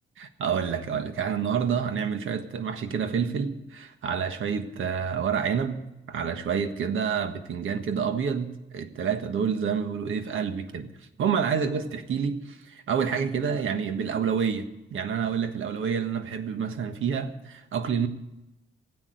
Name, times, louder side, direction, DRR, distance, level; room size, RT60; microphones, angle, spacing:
voice 1, 0.2-5.8 6.1-10.9 11.2-18.1, right 7 dB, 85° right, 1.5 m, -28 dB
17.0 x 8.5 x 9.4 m
wide cardioid pair, 155°, 20 cm